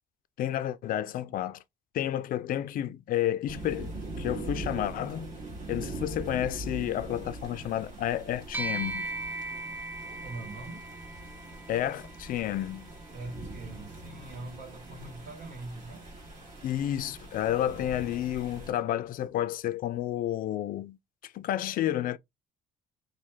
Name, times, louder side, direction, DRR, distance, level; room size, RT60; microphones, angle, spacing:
voice 1, 0.4-1.6 1.9-5.4 5.7-9.1 11.7-12.9 16.6-21.0 21.2-22.2, left 12 dB, 55° left, 0.4 m, -31 dB
sound 1, 3.5-18.7, right 2 dB, 45° right, 1.7 m, -42 dB
sound 2, 8.5-18.1, right 2 dB, 10° right, 0.5 m, -41 dB
voice 2, 10.2-10.9 13.1-16.1, right 2 dB, 70° right, 1.5 m, -42 dB
3.2 x 2.2 x 3.2 m
cardioid pair, 110°, 17 cm